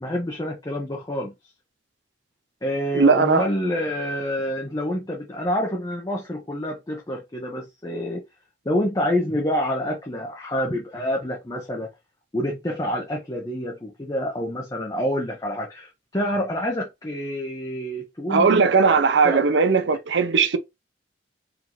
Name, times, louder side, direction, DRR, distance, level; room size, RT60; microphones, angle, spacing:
voice 1, 0.0-1.3 2.6-8.2 8.6-11.9 12.3-18.6 19.2-19.4, equal, 20° left, 0.6 m, -27 dB
voice 2, 2.9-3.4 18.3-20.6, right 5 dB, 70° right, 0.6 m, -18 dB
3.9 x 2.6 x 2.9 m
head